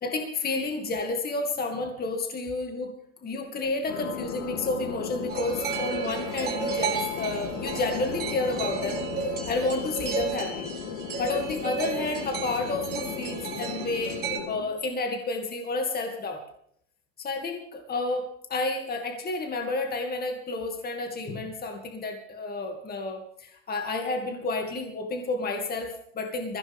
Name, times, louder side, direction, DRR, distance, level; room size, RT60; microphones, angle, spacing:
voice 1, 0.0-2.9 3.2-10.7 11.2-16.4 17.2-26.6, left 2 dB, 25° left, 3 dB, 2.5 m, -31 dB
sound 1, 3.9-14.6, left 6 dB, 65° left, 2.9 m, -36 dB
sound 2, 5.3-14.4, right 5 dB, 25° right, 5.5 m, -33 dB
20.5 x 16.0 x 3.6 m, 0.67 s
supercardioid pair, 120°, 38 cm